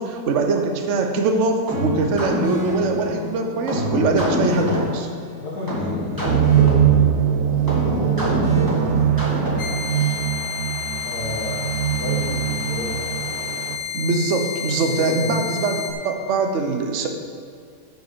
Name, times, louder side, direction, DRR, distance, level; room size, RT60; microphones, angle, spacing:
voice 1, 0.0-5.1 13.9-17.1, right 3 dB, 50° right, 4 dB, 1.1 m, -22 dB
sound 1, 1.7-9.9, left 1 dB, 10° right, 2.5 m, -26 dB
voice 2, 5.4-7.0 7.6-9.3 11.0-11.7 12.0-13.2 14.9-15.5, left 1 dB, 60° left, -7 dB, 2.2 m, -32 dB
sound 2, 6.2-13.8, right 10 dB, 70° right, 1.0 m, -21 dB
sound 3, 9.6-15.9, left 8 dB, 75° left, 1.7 m, -30 dB
9.2 x 6.7 x 6.8 m, 2.3 s
omnidirectional pair, 2.0 m